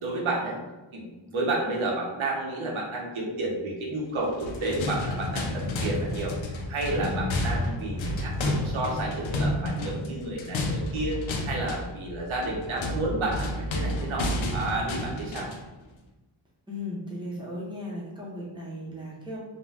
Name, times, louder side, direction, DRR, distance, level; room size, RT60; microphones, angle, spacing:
voice 1, 0.0-0.6 0.9-1.1 1.3-15.5, right 2 dB, 85° right, -2 dB, 0.9 m, -31 dB
sound 1, 4.3-15.7, left 1 dB, 75° left, 0.6 m, -30 dB
voice 2, 16.7-19.4, left 1 dB, 10° right, -5 dB, 0.7 m, -36 dB
2.6 x 2.2 x 3.3 m, 1.1 s
wide cardioid pair, 140°, 47 cm